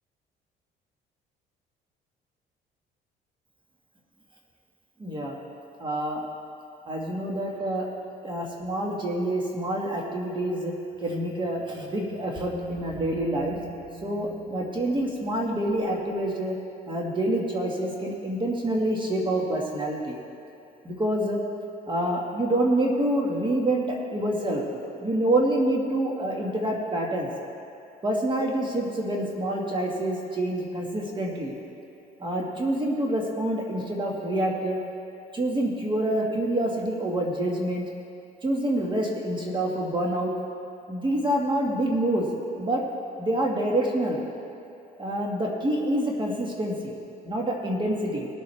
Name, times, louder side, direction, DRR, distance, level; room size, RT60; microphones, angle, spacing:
voice 1, 5.0-5.4 5.8-6.2 6.9-7.9 8.2-10.7 11.0-13.6 14.0-16.6 16.9-20.2 20.8-21.4 21.9-27.3 28.0-31.5 32.2-34.8 35.3-37.8 38.4-40.3 40.9-42.3 42.6-42.8 43.2-44.2 45.0-47.0 47.2-48.3, right 1 dB, 30° right, -1 dB, 1.7 m, -27 dB
sound 1, 10.9-16.3, right 2 dB, 5° right, 1.9 m, -43 dB
20.0 x 7.2 x 3.3 m, 2.5 s
cardioid pair, 110°, 17 cm